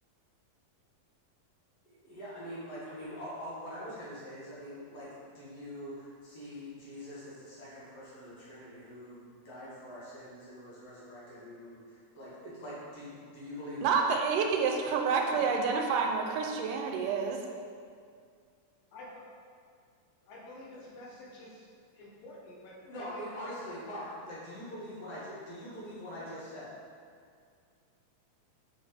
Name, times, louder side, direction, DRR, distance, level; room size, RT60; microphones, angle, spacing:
voice 1, 1.8-14.1 20.7-20.8 22.8-26.7, equal, 50° left, -9 dB, 2.6 m, -44 dB
voice 2, 13.8-17.4, right 5 dB, 80° right, 2 dB, 2.3 m, -28 dB
voice 3, 15.3-15.9 18.9-19.3 20.3-21.7 21.9-23.5, left 2 dB, 80° left, -4 dB, 2.9 m, -47 dB
6.7 x 5.5 x 3.4 m, 2.2 s
omnidirectional pair, 3.9 m